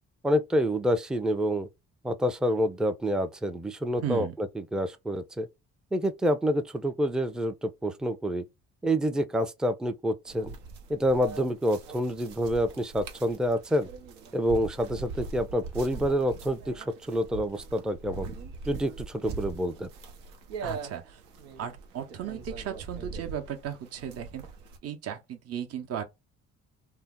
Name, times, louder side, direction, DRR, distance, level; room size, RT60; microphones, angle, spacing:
voice 1, 0.2-1.7 2.0-5.5 5.9-8.4 8.8-10.6 10.9-13.9 14.3-18.3 18.7-19.9, equal, ahead, 0.4 m, -28 dB
voice 2, 3.9-4.3 20.6-21.2 21.6-24.4 24.8-26.0, right 9 dB, 50° right, 0.7 m, -36 dB
sound 1, 10.3-24.8, right 5 dB, 90° right, 0.7 m, -41 dB
2.7 x 2.0 x 3.6 m
supercardioid pair, 70°, 31 cm